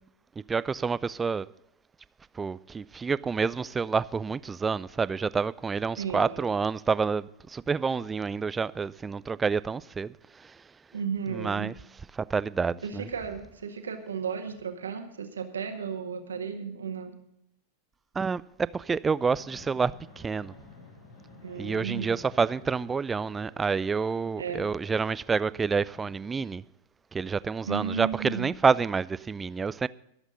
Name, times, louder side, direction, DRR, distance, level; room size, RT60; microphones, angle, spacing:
voice 1, 0.5-1.5 2.4-10.6 11.3-11.7 12.1-13.1 18.2-18.4 18.7-20.5 21.6-26.6 27.1-29.9, right 5 dB, 15° right, 0.4 m, -28 dB
voice 2, 6.0-6.5 10.9-11.7 12.8-17.2 21.4-22.2 24.4-24.7 27.6-28.6, right 6 dB, 70° right, 1.7 m, -34 dB
Fixed-wing aircraft airplane, 19.1-26.2, left 3 dB, 55° left, 6.0 m, -53 dB
23.5 x 8.1 x 3.9 m
figure-of-eight pair, 90°, 0 cm